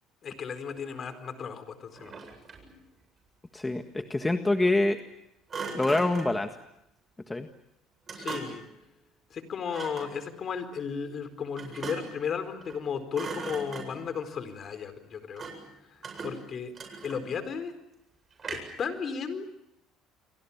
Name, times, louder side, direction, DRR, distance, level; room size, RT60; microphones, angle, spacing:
voice 1, 0.2-2.1 8.1-8.6 9.3-15.4 15.9-16.7 17.0-17.7 18.5-19.5, left 6 dB, 45° left, 10 dB, 4.4 m, -34 dB
Thump thud, 1.9-2.8 5.5-6.4 8.1-8.7 9.7-10.2 11.6-12.2 12.6-12.8 13.1-14.1 15.4-15.7 16.0-17.4 18.4-18.9, right 4 dB, 35° right, 8.0 m, -39 dB
voice 2, 3.5-5.0 5.7-6.5 7.3-7.5, left 2 dB, 15° left, 6 dB, 1.7 m, -26 dB
29.5 x 23.5 x 7.3 m, 0.83 s
supercardioid pair, 80°, 0 cm